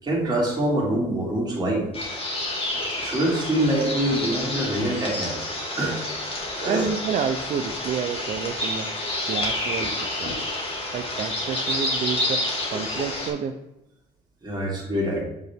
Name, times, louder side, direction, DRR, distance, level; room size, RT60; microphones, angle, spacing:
voice 1, 0.0-1.9 3.0-5.4 5.8-6.0 6.6-6.9 14.4-15.2, right 1 dB, 25° right, -3 dB, 2.5 m, -25 dB
sound 1, 1.9-13.3, left 1 dB, 35° left, 2.1 m, -29 dB
voice 2, 6.6-8.9 9.3-10.5 10.9-12.4 12.7-13.5, right 7 dB, 50° right, 6 dB, 0.5 m, -29 dB
8.1 x 3.8 x 3.5 m, 0.90 s
cardioid pair, 110°, 17 cm